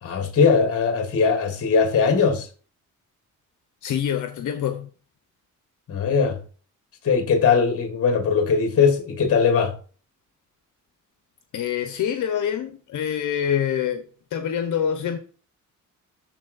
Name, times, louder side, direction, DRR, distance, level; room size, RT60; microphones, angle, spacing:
voice 1, 0.0-2.5 5.9-6.4 7.0-9.8, left 5 dB, 45° left, 1.5 m, -20 dB
voice 2, 3.8-4.9 11.5-14.0 14.3-15.2, left 9 dB, 65° left, 1.0 m, -25 dB
12.5 x 4.3 x 2.6 m
cardioid pair, 135°, 32 cm